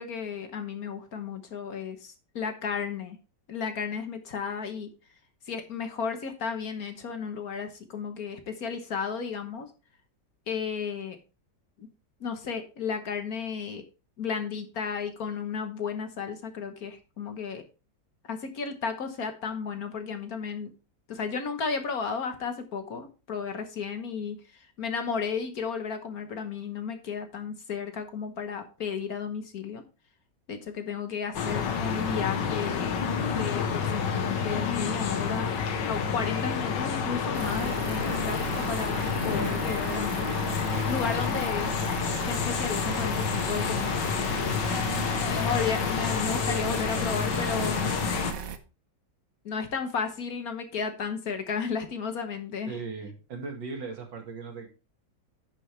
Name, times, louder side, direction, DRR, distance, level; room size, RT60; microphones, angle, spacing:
voice 1, 0.0-3.2 3.5-4.9 5.5-9.7 10.5-11.2 11.8-11.9 12.2-13.8 14.2-17.6 18.3-20.7 21.1-24.4 24.8-29.8 30.5-33.0 33.3-35.5 35.9-40.3 40.9-41.7 42.3-44.6 45.3-47.9 49.4-52.7, left 6 dB, 55° left, 7 dB, 1.5 m, -33 dB
sound 1, 31.3-48.3, left 6 dB, 75° left, 1.8 m, -29 dB
sound 2, 37.3-48.6, right 7 dB, 60° right, 1.1 m, -37 dB
voice 2, 52.7-54.7, right 4 dB, 75° right, 3 dB, 2.8 m, -38 dB
10.0 x 7.0 x 3.2 m, 0.32 s
omnidirectional pair, 2.0 m